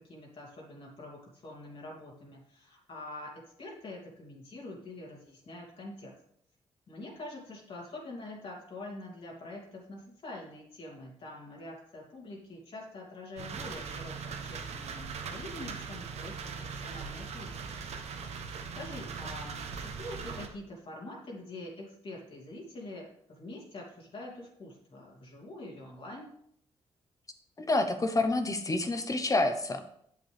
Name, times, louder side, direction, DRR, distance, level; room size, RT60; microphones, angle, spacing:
voice 1, 0.0-6.1 6.9-17.6 18.7-26.3, left 2 dB, 55° left, -3 dB, 2.8 m, -45 dB
sound 1, 13.4-20.5, right 5 dB, 75° right, 1.1 m, -40 dB
voice 2, 27.6-29.8, left 2 dB, 30° left, 8 dB, 1.0 m, -28 dB
8.1 x 7.5 x 3.5 m, 0.67 s
cardioid pair, 85°, 11 cm